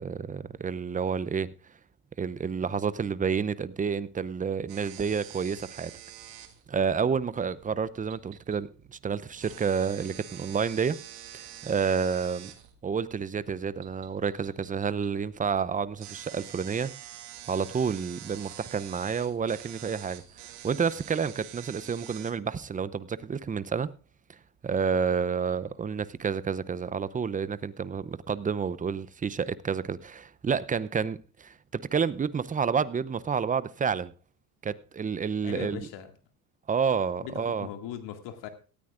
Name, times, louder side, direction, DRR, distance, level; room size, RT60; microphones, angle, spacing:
voice 1, 0.0-1.5 2.2-5.9 6.7-11.0 11.3-12.5 12.8-16.9 17.5-20.2 20.6-23.9 24.6-34.1 34.6-35.9 36.7-37.7, right 6 dB, 15° right, 0.6 m, -29 dB
sound 1, 4.7-22.3, right 12 dB, 75° right, 1.9 m, -47 dB
voice 2, 35.4-36.1 37.2-37.3 37.6-38.5, left 10 dB, 60° left, 2.3 m, -39 dB
18.0 x 13.5 x 2.5 m
hypercardioid pair, 75°, 49 cm